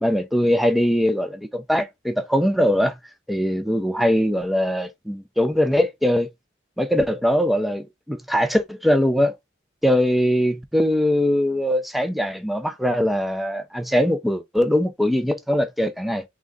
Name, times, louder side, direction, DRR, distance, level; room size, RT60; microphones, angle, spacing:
voice 1, 0.0-3.0 3.3-6.3 6.8-9.3 9.8-16.2, equal, ahead, 0.6 m, -21 dB
3.8 x 3.8 x 3.6 m
head